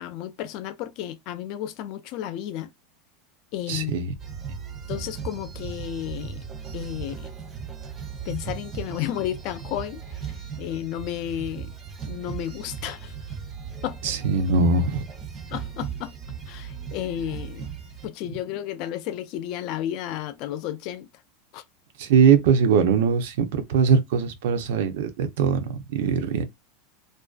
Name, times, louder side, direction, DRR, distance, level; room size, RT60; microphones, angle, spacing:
voice 1, 0.0-2.7 3.5-4.0 4.9-6.4 6.7-7.3 8.3-10.0 10.6-11.7 12.1-13.1 13.8-14.0 15.5-16.2 16.5-17.7 18.0-21.1 21.5-21.6, left 12 dB, 45° left, 0.3 m, -32 dB
voice 2, 3.7-4.1 14.0-15.0 22.0-26.4, right 6 dB, 70° right, 0.5 m, -21 dB
sound 1, 4.2-18.1, right 7 dB, 20° right, 0.5 m, -37 dB
2.4 x 2.2 x 2.3 m
supercardioid pair, 155°, 0 cm